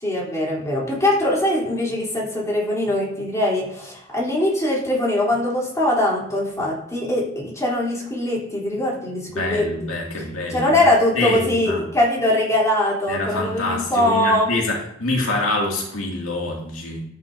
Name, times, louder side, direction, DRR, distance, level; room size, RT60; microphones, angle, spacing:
voice 1, 0.0-9.7 10.5-14.5, left 1 dB, 15° left, -5 dB, 3.6 m, -21 dB
voice 2, 9.3-10.7 11.1-11.8 13.1-17.0, left 2 dB, 90° left, -2 dB, 2.5 m, -25 dB
13.0 x 9.1 x 2.8 m, 0.73 s
head